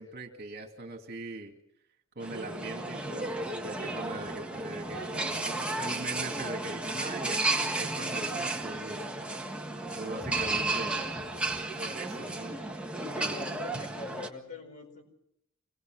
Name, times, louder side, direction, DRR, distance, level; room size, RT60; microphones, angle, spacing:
voice 1, 0.0-1.5 2.2-9.1 9.9-11.1 11.8-12.6 13.1-13.5, right 2 dB, 50° right, 3 dB, 2.5 m, -41 dB
sound 1, 2.2-14.3, right 2 dB, 5° right, 1.6 m, -33 dB
voice 2, 13.1-15.0, left 2 dB, 35° left, 5 dB, 4.8 m, -43 dB
26.5 x 20.0 x 6.3 m, 0.76 s
head